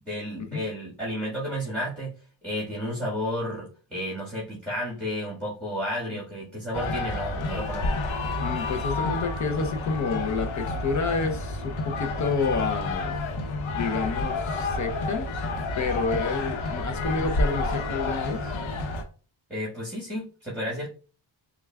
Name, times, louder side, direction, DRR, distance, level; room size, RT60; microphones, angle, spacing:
voice 1, 0.0-2.1 2.4-8.0 19.5-20.9, equal, ahead, 1.6 m, -32 dB
sound 1, 6.7-19.0, left 2 dB, 85° left, 0.9 m, -29 dB
voice 2, 8.4-13.2 13.7-15.3 15.7-18.6, left 4 dB, 40° left, 0.6 m, -29 dB
6.7 x 2.4 x 2.2 m
cardioid pair, 95°, 46 cm